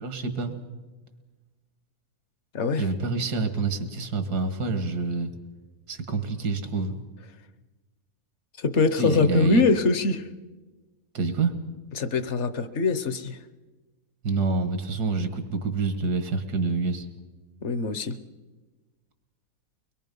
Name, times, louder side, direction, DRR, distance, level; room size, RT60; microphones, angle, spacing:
voice 1, 0.0-0.6 2.8-5.3 5.9-7.0 9.0-9.6 11.1-11.6 14.2-17.1, right 4 dB, 85° right, 9 dB, 2.1 m, -27 dB
voice 2, 8.6-10.3 12.0-13.4 17.6-18.2, left 3 dB, 55° left, 12 dB, 1.1 m, -23 dB
23.5 x 21.5 x 5.4 m, 1.2 s
omnidirectional pair, 1.7 m